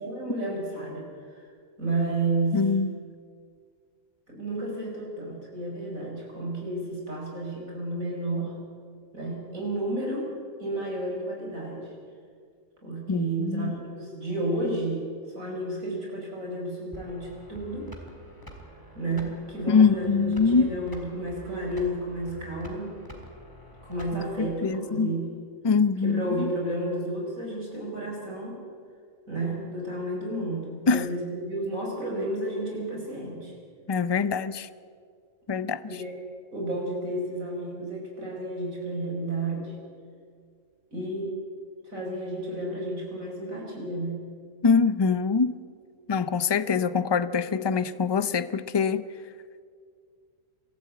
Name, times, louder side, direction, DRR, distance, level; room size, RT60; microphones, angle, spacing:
voice 1, 0.0-1.4 1.8-2.6 4.3-8.5 9.1-10.3 10.6-11.9 12.8-15.1 15.3-17.9 19.0-22.9 23.8-25.4 26.0-28.6 29.3-33.5 35.9-36.1 36.5-39.8 40.9-41.4 41.8-44.2, right 2 dB, 90° right, 5.6 m, -31 dB
voice 2, 2.5-2.9 13.1-13.7 19.7-20.8 24.4-25.1 25.6-26.5 30.9-31.1 33.9-34.7 35.5-35.8 44.6-45.6 46.1-49.1, left 5 dB, 35° left, 0.4 m, -24 dB
sound 1, 16.9-24.5, equal, 15° left, 2.9 m, -46 dB
24.5 x 13.5 x 8.4 m
omnidirectional pair, 1.4 m